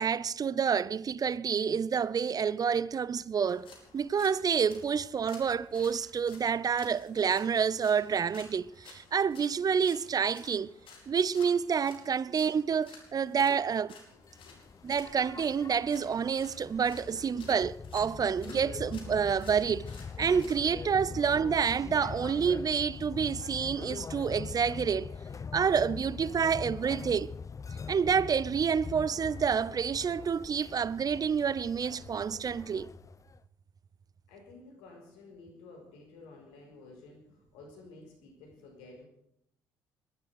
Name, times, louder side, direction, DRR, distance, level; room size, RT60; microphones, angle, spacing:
voice 1, 0.0-3.7 3.9-10.7 11.1-13.9 14.8-19.9 20.2-25.1 25.5-27.3 27.9-32.9, right 6 dB, 40° right, 0.7 m, -28 dB
sound 1, 3.5-20.7, left 4 dB, 60° left, 4.6 m, -55 dB
voice 2, 14.1-14.6 17.2-17.4 34.3-39.1, left 3 dB, 80° left, 5.0 m, -52 dB
sound 2, 14.2-33.4, left 5 dB, 35° left, 0.8 m, -43 dB
21.0 x 12.5 x 4.9 m
hypercardioid pair, 50°, 10 cm